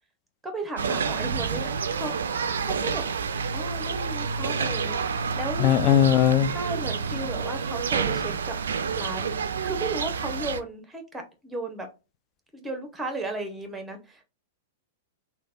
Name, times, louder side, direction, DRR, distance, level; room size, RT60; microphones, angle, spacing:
voice 1, 0.4-2.2 2.6-3.1 3.5-5.7 6.5-8.6 8.9-9.3 9.6-11.9 12.5-14.2, right 2 dB, 10° right, 0.8 m, -35 dB
sound 1, 0.8-10.6, right 5 dB, 75° right, 0.3 m, -29 dB
voice 2, 5.6-6.5, left 10 dB, 35° left, 0.3 m, -19 dB
3.3 x 2.1 x 2.4 m
figure-of-eight pair, 100°, 0 cm